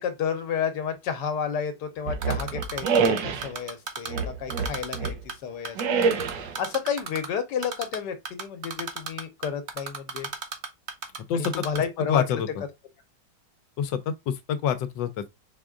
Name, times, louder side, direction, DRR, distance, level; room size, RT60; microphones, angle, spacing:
voice 1, 0.0-5.1 5.4-6.1 6.6-10.3 11.3-12.4, left 7 dB, 70° left, 1.5 m, -31 dB
sound 1, 2.1-3.5 4.1-5.2 5.8-6.6, right 5 dB, 85° right, 1.4 m, -26 dB
Typing, 2.2-4.2 4.5-5.3 5.6-7.3 7.6-8.0 8.2-11.2 11.4-11.8, right 5 dB, 50° right, 0.8 m, -33 dB
voice 2, 11.3-11.6 12.0-12.6 13.8-15.3, left 7 dB, 85° left, 1.4 m, -27 dB
5.0 x 3.6 x 2.4 m
omnidirectional pair, 1.9 m